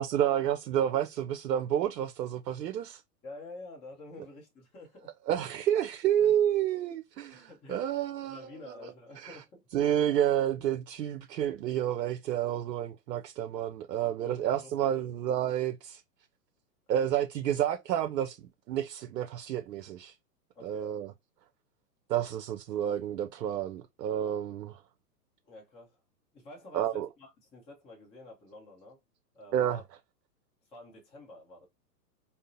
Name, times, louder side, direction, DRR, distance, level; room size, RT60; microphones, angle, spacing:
voice 1, 0.0-3.0 5.3-8.4 9.2-9.4 9.7-16.0 16.9-20.1 20.6-21.1 22.1-24.8 26.7-27.1 29.5-29.8, right 10 dB, 80° right, 0.5 m, -30 dB
voice 2, 3.2-5.1 6.2-6.3 7.3-8.0 8.3-9.6 14.2-15.1 20.5-21.1 25.4-26.0 26.3-29.0 29.3-29.8 30.6-31.7, left 2 dB, 15° left, 0.6 m, -49 dB
3.6 x 2.0 x 2.6 m
hypercardioid pair, 115°, 49 cm